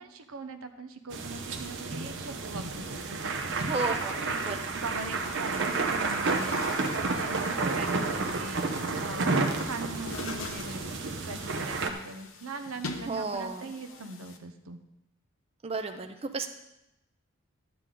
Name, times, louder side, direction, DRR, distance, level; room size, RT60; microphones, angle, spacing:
voice 1, 0.0-3.6 4.2-4.4 4.7-6.5 6.9-10.9 11.3-14.8, right 3 dB, 90° right, 7 dB, 0.9 m, -41 dB
sound 1, 1.1-11.9, right 3 dB, 60° right, 0.9 m, -31 dB
voice 2, 3.6-4.6 13.1-13.7 15.6-16.5, right 3 dB, 30° right, 6 dB, 0.5 m, -33 dB
Chatter / Gurgling / Tap, 5.3-14.4, left 3 dB, 70° left, 1.0 m, -44 dB
12.0 x 8.8 x 3.8 m, 0.90 s
head